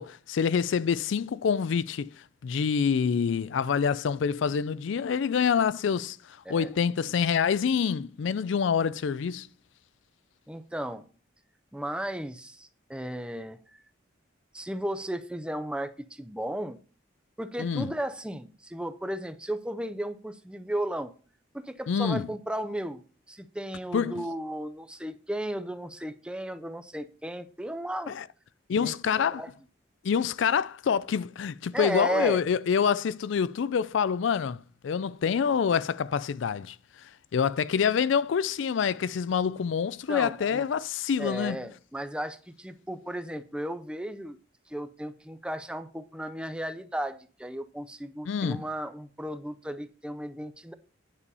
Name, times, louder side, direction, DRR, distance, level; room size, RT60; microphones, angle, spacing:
voice 1, 0.0-2.1 2.4-9.5 17.6-17.9 21.9-22.3 23.9-24.2 28.1-28.2 28.7-29.4 30.0-36.8 37.3-41.6 48.3-48.6, left 6 dB, 70° left, 0.4 m, -26 dB
voice 2, 10.5-11.1 11.7-13.8 14.5-16.8 17.4-21.1 21.5-28.2 28.8-29.5 31.7-32.4 40.1-40.7 41.2-44.4 44.7-50.7, right 1 dB, 5° right, 0.5 m, -35 dB
9.8 x 6.9 x 4.1 m
head